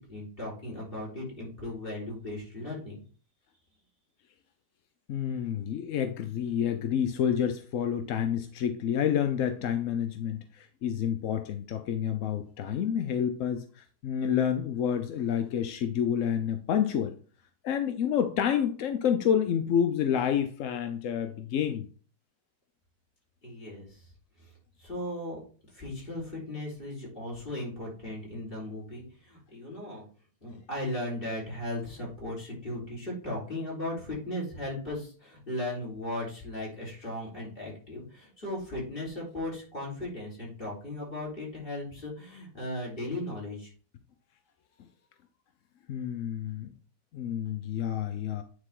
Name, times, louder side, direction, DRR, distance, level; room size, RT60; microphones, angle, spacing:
voice 1, 0.0-2.9 23.4-24.1 24.4-24.5 24.8-25.4 25.7-30.0 30.4-43.7, left 1 dB, 30° left, -4 dB, 4.0 m, -37 dB
voice 2, 5.1-17.1 17.6-21.9 45.9-46.7 47.1-48.4, left 8 dB, 65° left, 7 dB, 0.8 m, -29 dB
9.8 x 4.1 x 3.7 m, 0.41 s
omnidirectional pair, 1.9 m